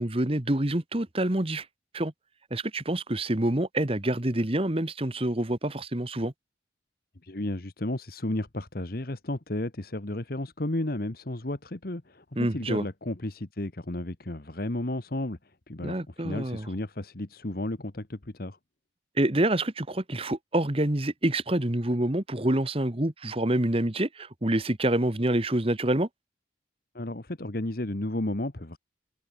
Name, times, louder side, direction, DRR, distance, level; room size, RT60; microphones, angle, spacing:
voice 1, 0.0-1.7 1.9-2.1 2.5-6.3 12.4-12.8 15.8-16.7 19.2-26.1, right 1 dB, 30° right, 1.4 m, -27 dB
voice 2, 7.2-18.6 26.9-28.8, left 1 dB, 50° left, 1.4 m, -33 dB
head